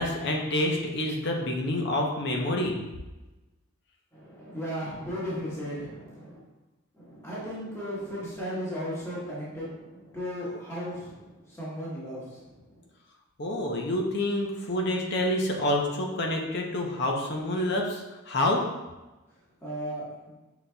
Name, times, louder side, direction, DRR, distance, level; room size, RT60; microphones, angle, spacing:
voice 1, 0.0-2.8 13.4-18.6, left 1 dB, 55° left, 0 dB, 0.7 m, -28 dB
voice 2, 4.1-6.4 6.9-12.8 19.6-20.3, equal, 15° left, -9 dB, 1.2 m, -36 dB
5.8 x 3.9 x 2.3 m, 1.1 s
head